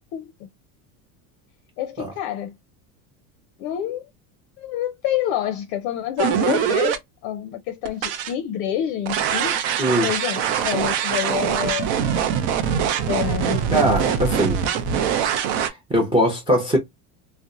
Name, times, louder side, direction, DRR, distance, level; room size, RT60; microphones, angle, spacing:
voice 1, 1.8-2.5 3.6-4.1 4.6-7.0 7.2-9.6 10.0-11.9 13.1-14.0 15.1-15.2, left 11 dB, 55° left, 0.5 m, -27 dB
sound 1, 6.2-7.0 7.9-8.3 9.1-15.7, right 8 dB, 60° right, 0.7 m, -23 dB
voice 2, 13.7-14.6 15.9-16.8, equal, 10° right, 0.5 m, -20 dB
2.7 x 2.1 x 2.3 m
supercardioid pair, 120°, 47 cm